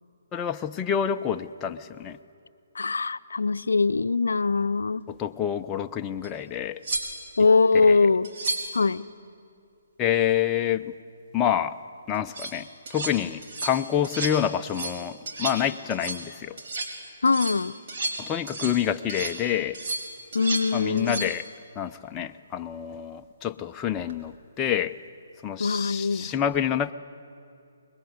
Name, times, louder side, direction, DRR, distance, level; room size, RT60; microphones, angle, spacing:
voice 1, 0.3-2.2 5.1-6.8 7.9-8.0 10.0-10.9 11.3-11.8 12.1-12.7 12.9-16.6 18.2-19.8 20.7-21.5 21.8-24.9 25.4-26.9, left 9 dB, 20° left, 6 dB, 0.7 m, -27 dB
voice 2, 2.8-5.0 7.4-8.3 8.7-9.1 17.2-17.8 20.3-21.3 25.6-26.3, left 4 dB, 75° left, 13 dB, 0.7 m, -22 dB
sound 1, 6.2-6.3 6.8-7.4 8.2-8.8 12.1-12.5 12.9-13.1 13.4-13.8 14.0-14.4 14.6-15.0 15.3-15.6 15.9-16.3 16.6-16.9 17.3-18.8 19.1-19.4 19.7-20.7 21.0-21.3 23.9-24.1, right 2 dB, 50° right, 4.1 m, -32 dB
25.0 x 21.0 x 9.7 m, 2.5 s
figure-of-eight pair, 140°, 0 cm